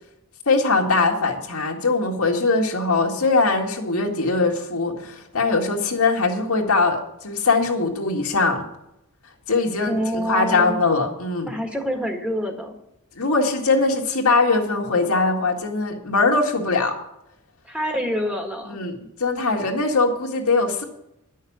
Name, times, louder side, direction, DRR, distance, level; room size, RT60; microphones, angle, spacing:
voice 1, 0.5-8.7 9.5-11.5 13.2-17.0 18.6-20.8, left 3 dB, 90° left, 1 dB, 1.9 m, -21 dB
voice 2, 9.9-10.8 11.4-12.7 17.7-18.8, equal, 5° right, 3 dB, 1.5 m, -26 dB
10.5 x 6.5 x 8.5 m, 0.83 s
head